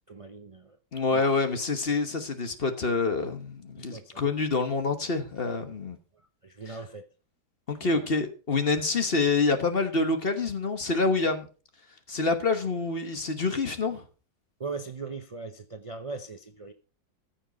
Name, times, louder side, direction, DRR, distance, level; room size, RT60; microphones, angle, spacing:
voice 1, 0.1-0.8 1.1-1.4 3.8-4.2 6.1-7.1 7.7-8.1 14.6-16.7, right 4 dB, 35° right, 0.5 m, -40 dB
voice 2, 0.9-6.0 7.7-11.5 12.1-14.0, left 3 dB, 35° left, 1.2 m, -27 dB
14.0 x 6.0 x 5.2 m
omnidirectional pair, 1.9 m